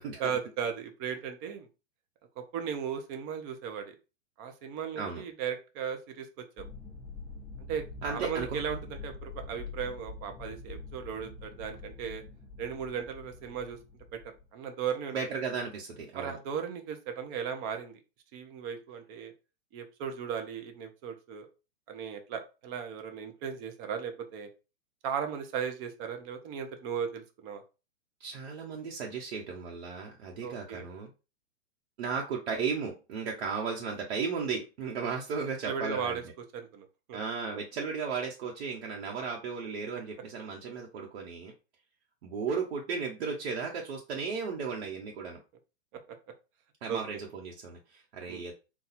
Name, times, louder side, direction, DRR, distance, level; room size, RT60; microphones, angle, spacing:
voice 1, 0.2-1.7 2.4-3.9 4.4-6.6 7.7-12.2 12.6-13.8 14.1-15.2 16.1-18.0 18.3-19.3 19.7-21.5 21.9-24.5 25.0-27.6 30.4-30.9 35.6-36.2 36.5-37.2 46.1-46.2 46.9-47.0 48.3-48.4, right 7 dB, 20° right, 6 dB, 0.4 m, -36 dB
sound 1, 6.6-14.4, left 3 dB, 5° left, 1.0 m, -45 dB
voice 2, 8.0-8.6 15.1-16.4 28.2-31.1 32.0-36.2 37.1-41.5 42.2-45.4 46.8-48.5, right 5 dB, 60° right, -1 dB, 0.9 m, -35 dB
4.2 x 2.3 x 4.1 m, 0.30 s
hypercardioid pair, 145°, 36 cm